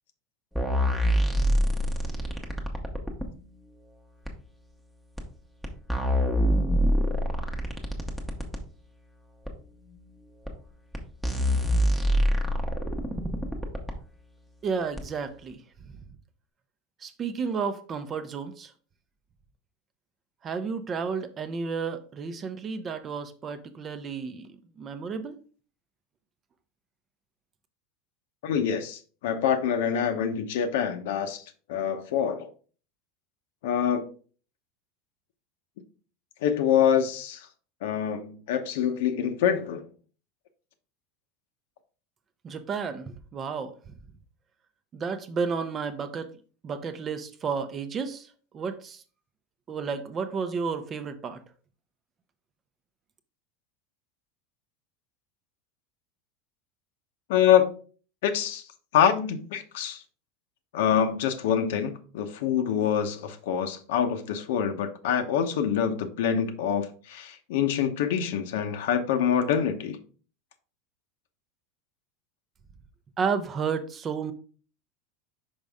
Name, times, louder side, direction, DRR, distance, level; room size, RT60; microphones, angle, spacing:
sound 1, 0.6-3.3 4.3-4.4 5.2-5.3 5.6-8.6 9.5-9.6 10.5-10.6 10.9-11.0 11.2-14.0 15.0-15.1, equal, ahead, 0.9 m, -25 dB
voice 1, 14.6-15.6 17.0-18.7 20.4-24.5 24.8-25.3 42.4-43.7 44.9-46.3 46.6-48.3 48.5-49.0 49.7-51.4 73.2-74.3, right 5 dB, 25° right, 0.6 m, -32 dB
voice 2, 28.4-32.5 33.6-34.1 36.4-37.5 37.8-39.8 57.3-57.7 58.2-58.6 58.9-60.0 60.7-70.0, left 8 dB, 75° left, 0.9 m, -25 dB
5.3 x 5.1 x 3.5 m
supercardioid pair, 160°, 0 cm